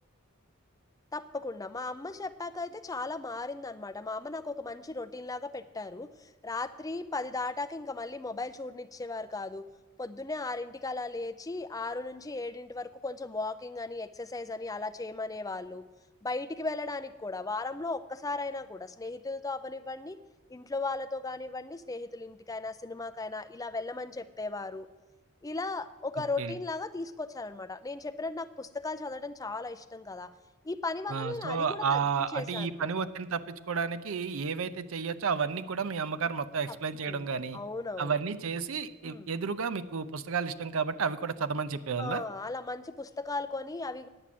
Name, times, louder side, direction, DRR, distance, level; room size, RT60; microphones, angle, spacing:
voice 1, 1.1-9.7 10.0-15.8 16.2-20.2 20.5-24.9 25.4-30.3 30.6-32.0 32.3-32.9 36.7-36.8 37.1-38.2 39.0-39.3 42.0-44.1, left 3 dB, 15° left, 11 dB, 0.4 m, -36 dB
voice 2, 31.1-37.6 38.0-42.2, right 5 dB, 65° right, 12 dB, 0.6 m, -32 dB
9.9 x 6.1 x 8.5 m, 1.1 s
head